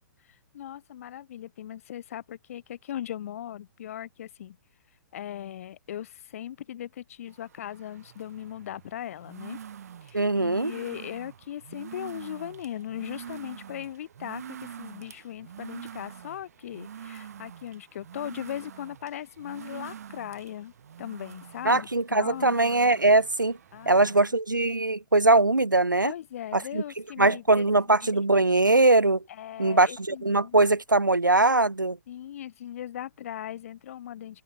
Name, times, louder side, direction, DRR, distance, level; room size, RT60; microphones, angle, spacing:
voice 1, 0.2-4.6 5.1-9.6 10.0-20.7 21.0-22.6 23.7-24.3 26.0-27.7 28.0-28.1 29.3-30.6 32.1-34.4, left 11 dB, 45° left, 6.0 m, -38 dB
sound 1, 7.3-24.2, right 8 dB, 55° right, 4.9 m, -45 dB
voice 2, 10.1-10.7 21.6-23.6 23.9-26.1 26.5-26.8 27.2-29.2 29.6-32.0, right 2 dB, 80° right, 1.5 m, -21 dB
open air
figure-of-eight pair, 120°, 10 cm